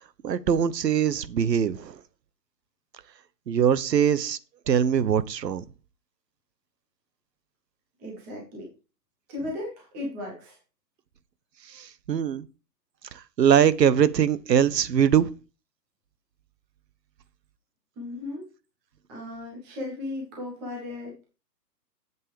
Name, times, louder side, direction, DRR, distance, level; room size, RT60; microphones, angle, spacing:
voice 1, 0.2-1.9 3.5-4.4 4.7-5.6 11.7-12.4 13.4-15.3, right 8 dB, 75° right, 1.0 m, -22 dB
voice 2, 8.0-8.7 9.3-10.6 18.0-18.5 19.1-21.2, left 2 dB, 5° right, 0.6 m, -36 dB
7.6 x 6.2 x 4.9 m
hypercardioid pair, 155°, 49 cm